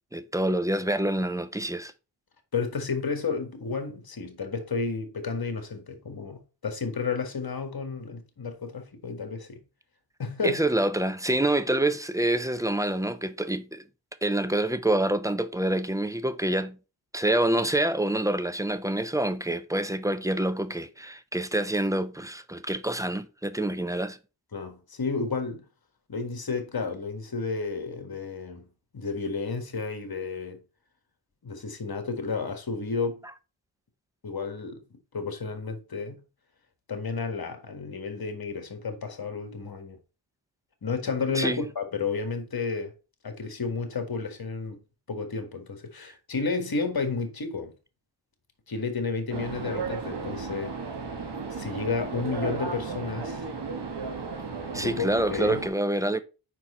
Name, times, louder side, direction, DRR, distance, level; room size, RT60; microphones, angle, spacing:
voice 1, 0.1-1.9 10.4-13.8 14.2-16.8 17.1-24.2 41.3-41.6 54.7-56.2, right 1 dB, 5° right, 0.5 m, -27 dB
voice 2, 2.5-9.6 10.2-10.6 24.5-25.6 26.1-28.7 28.9-30.6 31.4-33.2 34.2-36.2 36.9-40.0 40.8-42.9 43.2-44.8 45.1-47.7 48.7-50.7 51.5-53.4 54.8-55.6, left 4 dB, 50° left, 1.6 m, -32 dB
sound 1, 49.3-55.7, right 4 dB, 55° right, 1.4 m, -34 dB
5.2 x 4.6 x 4.3 m
cardioid pair, 60°, 47 cm